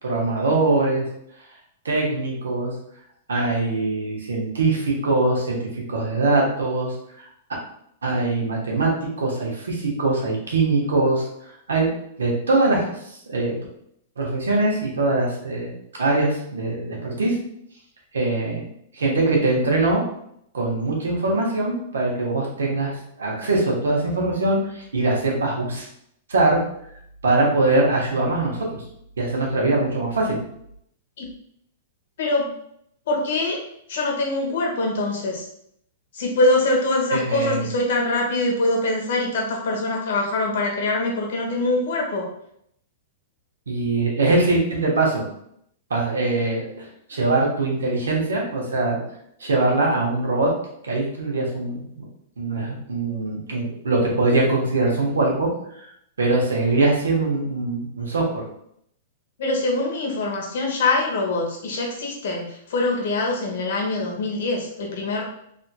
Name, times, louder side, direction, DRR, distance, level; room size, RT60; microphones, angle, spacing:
voice 1, 0.0-1.0 1.8-2.7 3.3-7.3 8.0-13.6 14.2-15.7 16.0-17.4 18.1-18.6 18.9-20.0 20.5-25.9 26.3-26.6 27.2-28.8 29.2-30.4 37.1-37.7 43.7-45.3 45.9-49.0 49.4-50.5 50.8-52.1 52.4-55.9 56.2-58.2, right 2 dB, 85° right, -2 dB, 1.0 m, -22 dB
voice 2, 32.2-32.5 33.1-35.4 36.1-42.3 59.4-65.2, left 2 dB, 70° left, 0 dB, 1.0 m, -24 dB
3.4 x 2.7 x 2.2 m, 0.72 s
hypercardioid pair, 115°, 0 cm